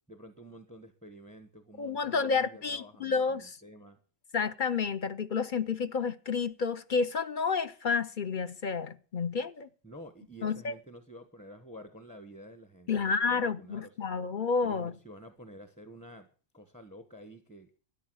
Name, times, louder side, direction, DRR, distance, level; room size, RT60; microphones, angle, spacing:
voice 1, 0.1-4.0 9.8-14.1 14.6-16.3 16.5-17.7, equal, 5° left, 1.1 m, -50 dB
voice 2, 1.8-3.5 4.3-9.7 10.4-10.7 12.9-14.9, left 5 dB, 45° left, 0.7 m, -30 dB
13.5 x 10.0 x 6.2 m
omnidirectional pair, 1.4 m